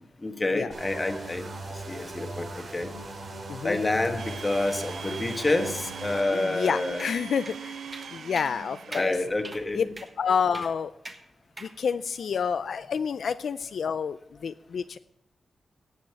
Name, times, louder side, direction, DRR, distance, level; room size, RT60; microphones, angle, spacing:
voice 1, 0.2-1.5 1.9-2.9 3.6-7.1 8.9-9.9, left 2 dB, 20° left, 5 dB, 1.3 m, -28 dB
sound 1, 0.7-6.2, right 2 dB, 60° right, 3.2 m, -39 dB
voice 2, 3.5-3.8 6.3-7.8 8.1-9.1 9.7-9.8 10.2-10.9 11.6-15.0, left 6 dB, 70° left, 12 dB, 0.3 m, -29 dB
Domestic sounds home sounds, 4.2-9.7, right 6 dB, 80° right, 0.7 m, -41 dB
sound 2, 7.0-7.2 7.5-7.6 7.9-8.1 8.4-8.5 8.9-9.1 9.4-9.6 10.0-10.1 10.5-10.7 11.0-11.2 11.6-11.7, right 2 dB, 25° right, 1.3 m, -41 dB
17.5 x 7.5 x 4.6 m, 0.79 s
wide cardioid pair, 155°, 0 cm